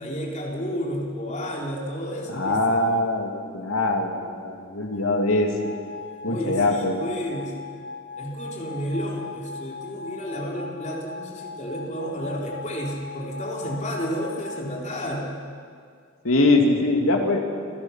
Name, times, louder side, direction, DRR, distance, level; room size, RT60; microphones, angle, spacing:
voice 1, 0.0-2.9 6.2-7.6 8.2-15.4, equal, 35° left, -2 dB, 3.7 m, -31 dB
voice 2, 2.3-5.7 6.2-7.0 16.2-17.4, left 2 dB, 80° left, 2 dB, 2.8 m, -22 dB
sound 1, 4.9-14.6, left 4 dB, 60° left, 2.6 m, -39 dB
28.0 x 17.5 x 5.9 m, 2.1 s
head